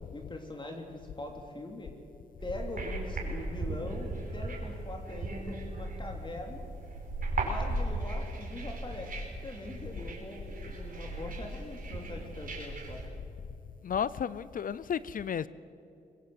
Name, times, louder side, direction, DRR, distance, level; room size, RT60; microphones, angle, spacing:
voice 1, 0.1-1.9 2.4-6.6 7.4-9.1 9.4-13.0, left 1 dB, 30° left, 2 dB, 2.9 m, -42 dB
sound 1, 2.4-13.1, right 2 dB, 65° right, 5.0 m, -37 dB
voice 2, 13.8-15.5, left 8 dB, 60° left, 17 dB, 0.6 m, -32 dB
24.0 x 20.5 x 7.9 m, 2.7 s
cardioid pair, 80°, 16 cm